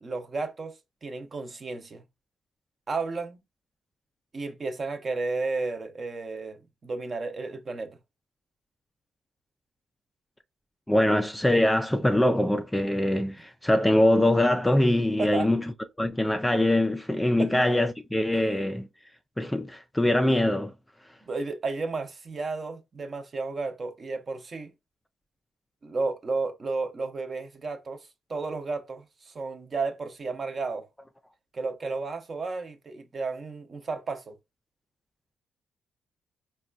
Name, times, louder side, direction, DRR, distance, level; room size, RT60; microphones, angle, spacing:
voice 1, 0.0-2.0 2.9-3.4 4.3-8.0 15.2-15.5 17.4-17.5 21.3-24.7 25.8-30.9 31.5-34.4, right 3 dB, 40° right, 0.6 m, -33 dB
voice 2, 10.9-15.6 16.0-18.9 19.4-20.7, left 1 dB, 10° left, 0.3 m, -23 dB
4.1 x 2.2 x 2.4 m
cardioid pair, 90°, 0 cm